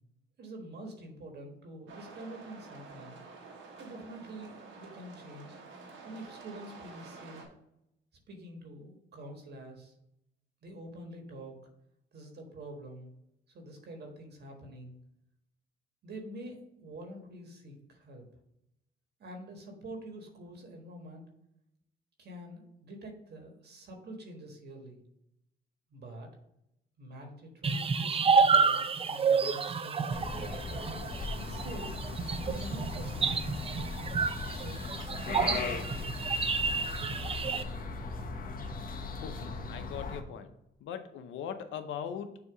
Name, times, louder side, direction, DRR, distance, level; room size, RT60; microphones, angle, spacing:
voice 1, 0.4-3.2 3.8-5.6 6.0-7.5 8.3-9.9 10.6-11.6 12.1-13.1 13.5-15.0 16.0-18.2 19.2-21.3 22.2-25.0 25.9-26.3 27.0-30.1 31.3-32.0 32.4-33.4 34.5-34.8 35.3-36.2, right 1 dB, 55° right, 3 dB, 1.5 m, -46 dB
sound 1, 1.9-7.4, right 4 dB, 75° right, 1.4 m, -49 dB
sound 2, 27.6-37.6, right 5 dB, 30° right, 0.5 m, -29 dB
sound 3, 30.1-40.2, left 3 dB, 45° left, 0.9 m, -38 dB
voice 2, 39.2-40.5 40.8-42.4, left 8 dB, 75° left, 8 dB, 0.7 m, -40 dB
6.9 x 2.9 x 4.9 m, 0.81 s
cardioid pair, 90°, 20 cm